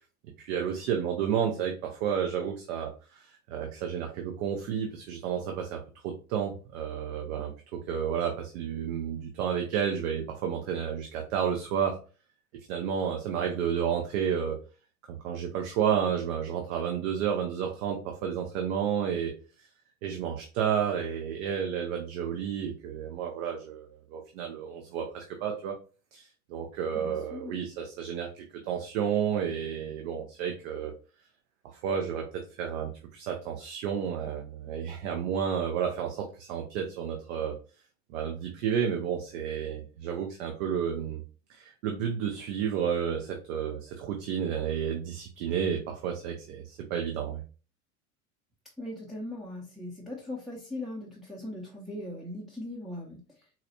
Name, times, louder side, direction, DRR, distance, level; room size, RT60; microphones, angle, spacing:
voice 1, 0.4-12.0 12.7-14.6 15.1-19.7 20.0-25.8 26.1-30.9 31.7-37.5 38.1-41.2 41.5-47.4, right 8 dB, 60° right, 3 dB, 0.7 m, -31 dB
voice 2, 26.9-27.6 48.8-53.2, left 1 dB, ahead, -2 dB, 0.5 m, -39 dB
4.0 x 2.1 x 2.7 m, 0.36 s
hypercardioid pair, 85°, 45 cm